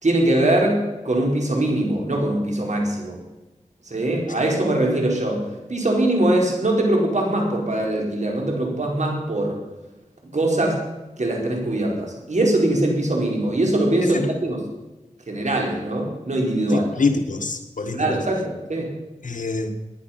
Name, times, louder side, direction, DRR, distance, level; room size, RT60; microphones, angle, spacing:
voice 1, 0.0-3.2 3.8-9.6 10.3-10.8 11.2-14.6 15.3-16.9 17.9-18.9, right 1 dB, 65° right, 0 dB, 4.6 m, -22 dB
voice 2, 16.7-18.2 19.2-19.7, left 4 dB, 80° left, 6 dB, 1.7 m, -25 dB
18.0 x 10.5 x 6.0 m, 1.1 s
cardioid pair, 45°, 13 cm